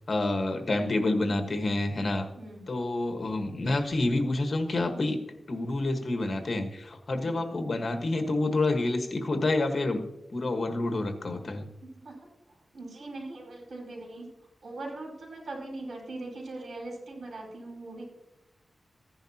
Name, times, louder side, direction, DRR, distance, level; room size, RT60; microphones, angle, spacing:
voice 1, 0.1-2.3 2.7-5.2 5.5-10.0 10.3-11.6, left 2 dB, 50° left, 5 dB, 1.4 m, -28 dB
voice 2, 7.2-7.7 11.8-12.2 12.5-14.3 14.6-18.1, right 2 dB, 80° right, -1 dB, 4.8 m, -41 dB
15.5 x 10.5 x 2.9 m, 0.89 s
wide cardioid pair, 100°, 0 cm